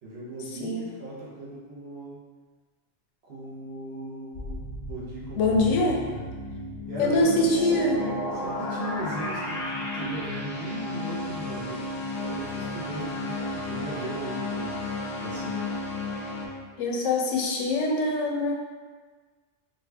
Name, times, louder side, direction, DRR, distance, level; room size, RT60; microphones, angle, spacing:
voice 1, 0.0-2.2 3.2-6.3 6.9-14.8 15.2-15.7, right 1 dB, 60° right, -5 dB, 1.0 m, -38 dB
sound 1, 4.3-16.5, left 1 dB, 55° left, 0.4 m, -33 dB
voice 2, 5.4-6.0 7.0-7.9 16.8-18.5, left 2 dB, 80° left, 0 dB, 0.9 m, -24 dB
2.6 x 2.6 x 3.3 m, 1.4 s
omnidirectional pair, 1.2 m